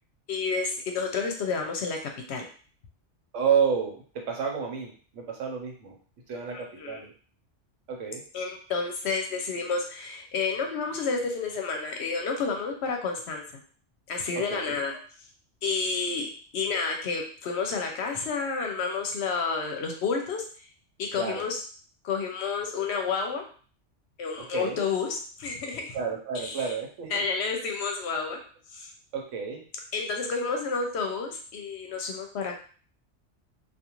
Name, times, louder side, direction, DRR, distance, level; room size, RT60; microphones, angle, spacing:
voice 1, 0.3-2.0 2.3-2.5 6.5-7.0 8.3-13.4 14.1-14.9 15.6-20.7 21.0-21.6 22.0-23.4 24.2-26.0 26.4-26.7 27.1-28.4 28.7-28.9 29.9-32.6, left 4 dB, 65° left, 3 dB, 0.8 m, -30 dB
voice 2, 3.3-6.0 6.3-7.1 7.9-8.2 14.4-14.8 21.2-21.4 24.4-24.8 25.9-27.2 29.1-29.6, right 6 dB, 85° right, 1 dB, 1.1 m, -30 dB
2.4 x 2.4 x 2.9 m, 0.42 s
omnidirectional pair, 1.3 m